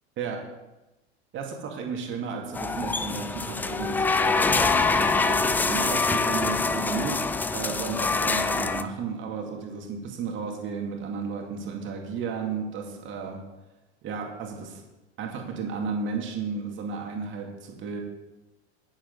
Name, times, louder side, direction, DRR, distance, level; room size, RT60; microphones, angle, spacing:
voice 1, 1.3-7.2 7.5-13.4 14.0-14.8 15.2-18.0, right 5 dB, 35° right, 1 dB, 2.5 m, -33 dB
sound 1, 2.5-8.8, left 4 dB, 5° left, 0.3 m, -25 dB
10.0 x 10.0 x 4.2 m, 1.0 s
figure-of-eight pair, 80°, 33 cm